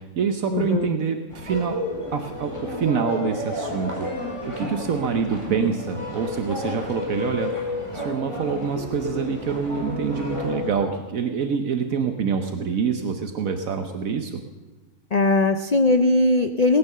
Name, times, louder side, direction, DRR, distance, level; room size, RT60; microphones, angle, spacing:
voice 1, 0.0-1.8 2.1-7.5 7.9-14.4, right 6 dB, 70° right, 6 dB, 1.3 m, -26 dB
voice 2, 0.5-0.9 15.1-16.8, left 2 dB, 90° left, 9 dB, 0.3 m, -19 dB
sound 1, 1.3-10.7, left 1 dB, 20° left, 3.9 m, -31 dB
18.5 x 9.5 x 6.7 m, 1.2 s
omnidirectional pair, 1.5 m